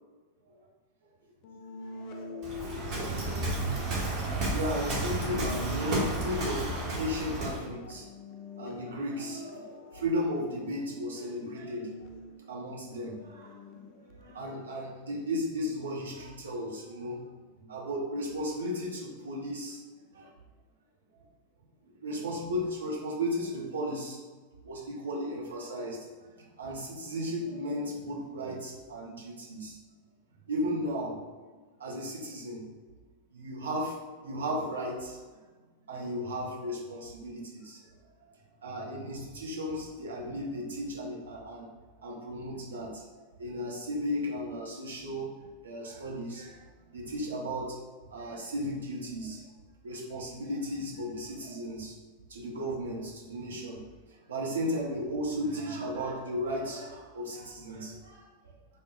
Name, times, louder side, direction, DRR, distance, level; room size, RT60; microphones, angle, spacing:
sound 1, 1.4-15.1, left 3 dB, 40° left, 0.4 m, -45 dB
voice 1, 1.9-3.4 4.5-8.1 8.6-11.9 12.5-13.6 13.9-17.2 17.6-19.8 20.1-20.3 21.8-24.2 24.6-26.1 26.4-29.8 30.5-31.2 31.8-32.7 33.3-35.2 35.9-37.8 38.6-41.7 42.0-43.0 43.4-45.4 45.6-46.6 46.9-47.8 48.1-49.4 49.8-51.9 52.3-53.8 54.3-58.2, equal, 70° right, -3 dB, 0.8 m, -35 dB
Waves surf, 2.4-7.7, right 2 dB, 35° right, 1.1 m, -32 dB
3.6 x 2.1 x 3.9 m, 1.4 s
figure-of-eight pair, 90°, 0 cm